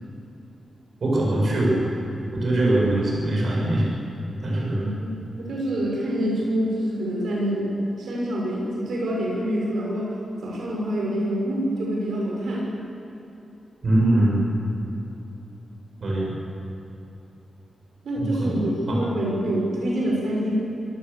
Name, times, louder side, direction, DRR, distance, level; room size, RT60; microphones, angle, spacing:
voice 1, 1.0-1.8 2.3-3.9 4.4-4.9 13.8-14.4 16.0-16.3 18.2-18.6 18.9-19.0, right 1 dB, 50° right, -4 dB, 7.4 m, -22 dB
voice 2, 4.7-5.1 5.4-7.7 8.0-10.1 10.4-12.7 18.0-20.5, equal, 85° right, -3 dB, 6.4 m, -26 dB
25.0 x 18.0 x 7.2 m, 2.9 s
wide cardioid pair, 175°, 0 cm